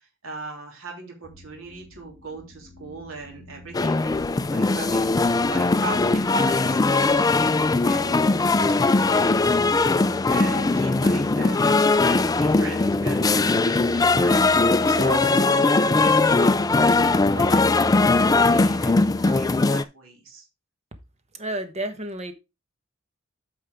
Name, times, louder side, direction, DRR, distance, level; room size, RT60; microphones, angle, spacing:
voice 1, 0.0-5.1 5.4-7.1 7.8-8.5 8.8-9.2 10.1-20.4, right 3 dB, 80° right, 0 dB, 3.0 m, -38 dB
sound 1, 1.2-19.6, right 1 dB, 5° right, 2.2 m, -42 dB
sound 2, 3.7-19.8, left 3 dB, 20° left, 0.4 m, -20 dB
voice 2, 21.4-22.3, right 1 dB, 35° right, 8 dB, 1.2 m, -30 dB
8.8 x 5.5 x 3.5 m, 0.25 s
head